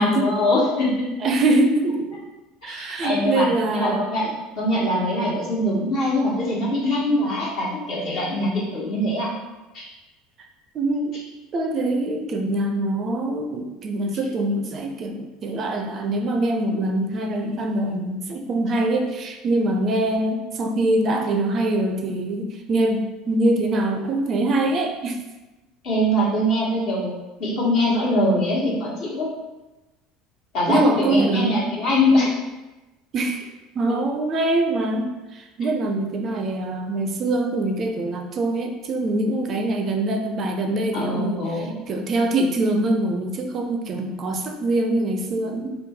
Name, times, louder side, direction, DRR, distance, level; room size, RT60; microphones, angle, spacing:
voice 1, 0.0-1.1 2.6-4.3 4.5-9.3 9.7-9.9 25.8-27.1 27.4-29.3 30.5-32.3 40.9-41.7, left 1 dB, 55° left, -5 dB, 1.2 m, -22 dB
voice 2, 1.2-2.1 2.6-4.0 10.7-11.2 11.5-25.2 30.7-31.5 33.1-33.4 33.8-45.8, right 2 dB, 40° right, 4 dB, 0.4 m, -24 dB
3.1 x 2.2 x 3.4 m, 1.1 s
figure-of-eight pair, 70°, 0 cm